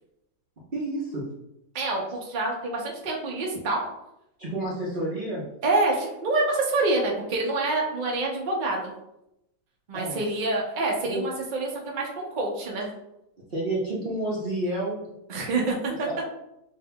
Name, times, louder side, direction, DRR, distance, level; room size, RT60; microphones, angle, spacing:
voice 1, 0.7-1.3 4.4-5.5 9.9-10.2 11.0-11.3 13.5-15.1 16.1-16.2, right 1 dB, 45° right, -5 dB, 0.6 m, -30 dB
voice 2, 1.7-3.9 5.6-8.9 9.9-12.9 15.3-15.9, right 2 dB, 85° right, -1 dB, 0.4 m, -27 dB
5.4 x 3.2 x 2.2 m, 0.85 s
omnidirectional pair, 2.1 m